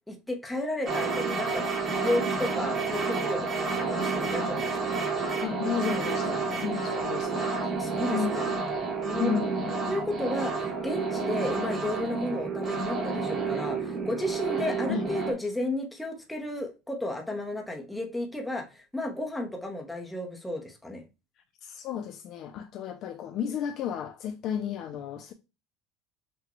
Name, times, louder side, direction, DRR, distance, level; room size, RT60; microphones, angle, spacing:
voice 1, 0.1-1.6 2.0-5.0 7.6-8.5 9.0-9.4 9.9-21.0, left 1 dB, 5° left, 0.7 m, -33 dB
sound 1, 0.9-15.3, right 4 dB, 20° right, 1.0 m, -30 dB
voice 2, 5.4-7.5 8.1-8.4 9.2-9.7 14.9-15.1 21.6-25.3, left 8 dB, 35° left, 0.4 m, -33 dB
5.9 x 2.2 x 2.9 m
cardioid pair, 175°, 0 cm